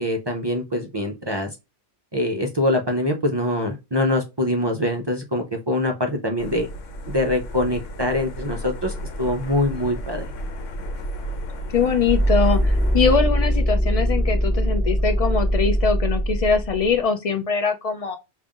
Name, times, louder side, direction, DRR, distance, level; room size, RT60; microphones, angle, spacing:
voice 1, 0.0-1.5 2.1-6.7 7.1-10.3, left 1 dB, 45° right, 0.3 m, -24 dB
sound 1, 6.4-13.2, equal, 90° left, 1.0 m, -33 dB
voice 2, 11.7-18.2, left 5 dB, 70° left, 0.3 m, -22 dB
sound 2, 12.0-16.9, equal, 15° left, 1.5 m, -21 dB
5.2 x 2.5 x 2.4 m
omnidirectional pair, 1.2 m